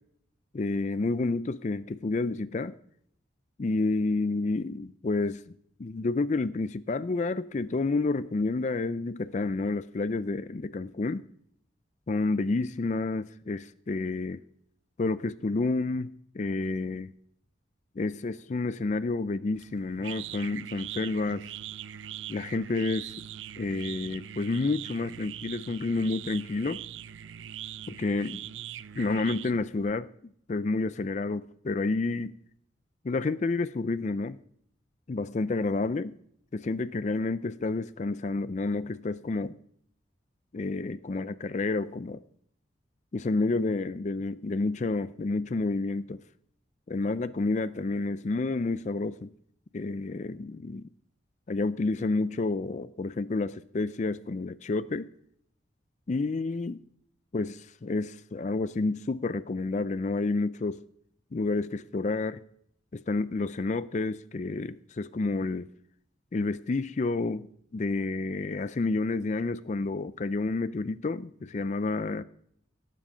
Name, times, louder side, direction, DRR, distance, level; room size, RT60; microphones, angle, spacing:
voice 1, 0.5-2.7 3.6-11.2 12.1-14.4 15.0-17.1 18.0-21.5 22.3-23.1 23.6-26.8 27.9-28.4 29.0-30.1 30.5-32.4 33.0-34.4 35.1-36.2 36.5-39.6 40.5-42.2 43.1-46.2 46.9-49.3 49.7-50.9 51.5-55.1 56.1-56.8 57.3-60.8 61.3-62.4 62.9-65.7 66.3-67.5 67.7-72.2, left 3 dB, 40° left, 0.4 m, -30 dB
sound 1, 19.5-29.9, right 10 dB, 80° right, 0.5 m, -42 dB
17.5 x 7.7 x 5.0 m
head